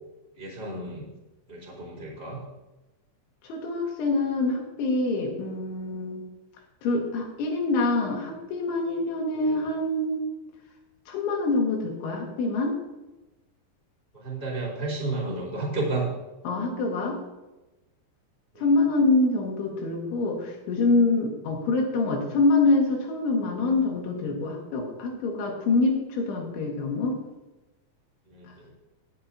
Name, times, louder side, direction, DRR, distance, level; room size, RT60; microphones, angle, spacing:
voice 1, 0.4-1.1 1.5-2.4 9.3-9.6 14.1-16.1 18.5-18.7 28.3-28.7, right 3 dB, 15° left, -2 dB, 2.5 m, -32 dB
voice 2, 3.4-6.2 6.8-10.2 11.1-12.7 16.5-17.2 18.6-27.2, left 3 dB, 90° left, 1 dB, 4.2 m, -25 dB
19.0 x 7.6 x 2.8 m, 1.0 s
omnidirectional pair, 5.2 m